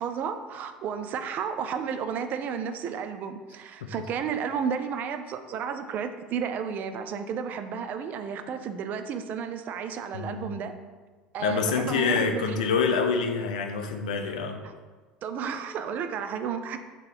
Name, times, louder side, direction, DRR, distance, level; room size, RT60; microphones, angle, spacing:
voice 1, 0.0-10.7 11.3-12.6 14.6-14.7 15.2-16.8, right 7 dB, 40° right, 8 dB, 0.3 m, -32 dB
voice 2, 10.1-10.5 11.4-14.6, left 5 dB, 70° left, 5 dB, 0.4 m, -26 dB
3.7 x 2.9 x 4.4 m, 1.4 s
figure-of-eight pair, 65°, 4 cm